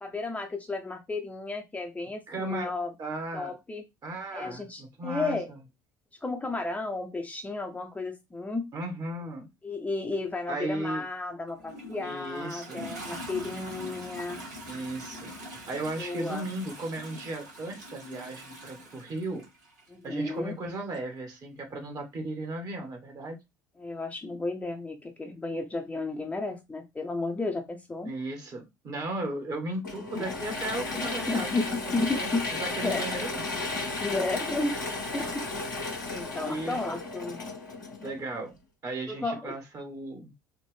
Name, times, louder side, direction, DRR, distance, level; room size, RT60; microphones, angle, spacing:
voice 1, 0.0-2.9 3.3-3.8 4.3-5.5 6.2-8.7 9.6-14.4 16.0-16.5 19.9-20.5 23.8-28.1 30.1-30.2 31.3-32.5 32.8-33.0 34.0-34.8 35.1-35.4 36.1-37.4 39.1-39.6, left 3 dB, 15° left, 0.8 m, -33 dB
voice 2, 2.3-2.7 3.0-3.6 4.0-5.6 8.7-9.5 10.5-11.0 12.0-12.9 14.7-15.3 15.7-19.4 20.0-23.4 28.0-32.3 32.6-33.4 36.4-37.0 38.0-38.5 38.8-40.3, right 2 dB, 35° right, 1.6 m, -36 dB
Toilet flush, 11.5-19.9 20.9-21.0, equal, 75° right, 1.4 m, -43 dB
Mechanisms / Drill, 29.8-38.4, left 3 dB, 80° left, 1.3 m, -34 dB
4.3 x 2.5 x 3.3 m
figure-of-eight pair, 60°, 10 cm